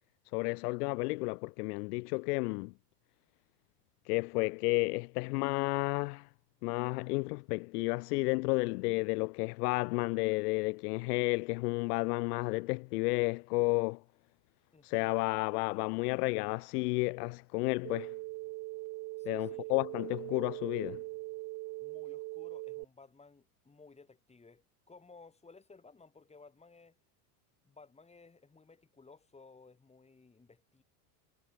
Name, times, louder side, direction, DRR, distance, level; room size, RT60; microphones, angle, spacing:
voice 1, 0.3-2.7 4.1-6.3 6.6-14.0 14.8-18.1 19.3-21.0, left 26 dB, 75° left, 0.8 m, -32 dB
voice 2, 14.7-15.1 19.2-19.7 21.8-27.0 27.6-30.8, left 4 dB, 15° left, 6.2 m, -58 dB
sound 1, 17.8-22.8, right 23 dB, 40° right, 0.4 m, -41 dB
supercardioid pair, 125°, 47 cm